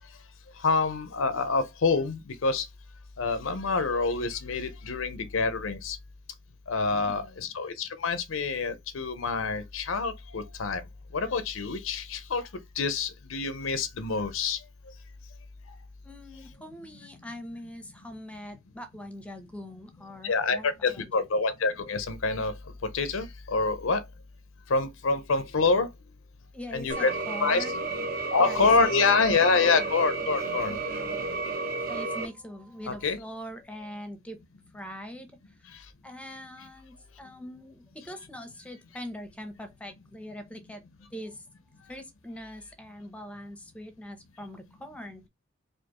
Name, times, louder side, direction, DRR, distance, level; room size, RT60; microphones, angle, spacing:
voice 1, 0.6-2.6 3.2-6.0 6.7-10.8 11.1-12.5 12.8-14.6 20.2-22.5 22.9-24.0 24.7-25.9 26.7-27.1 27.4-27.6 28.3-30.8 32.9-33.2, left 4 dB, 85° left, 0.6 m, -26 dB
voice 2, 6.9-7.5 16.0-21.4 26.5-28.0 28.4-29.9 30.7-34.4 34.7-40.8 41.1-41.5 41.9-45.3, equal, 5° left, 0.7 m, -43 dB
sound 1, 26.9-32.3, right 3 dB, 45° right, 0.8 m, -32 dB
4.3 x 2.6 x 2.9 m
head